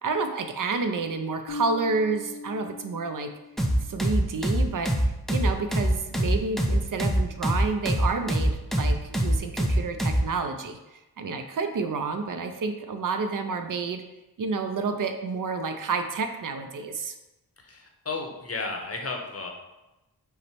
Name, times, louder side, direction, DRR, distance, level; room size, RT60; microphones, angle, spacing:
voice 1, 0.0-3.3 3.8-14.0 14.4-17.1, right 4 dB, 55° right, 7 dB, 0.5 m, -30 dB
Bass guitar, 1.5-4.1, left 1 dB, 75° left, 0.8 m, -40 dB
sound 1, 3.6-10.3, right 1 dB, ahead, 0.4 m, -24 dB
voice 2, 17.6-19.5, left 3 dB, 40° left, 2 dB, 0.7 m, -33 dB
5.6 x 2.1 x 4.5 m, 1.0 s
wide cardioid pair, 120°, 39 cm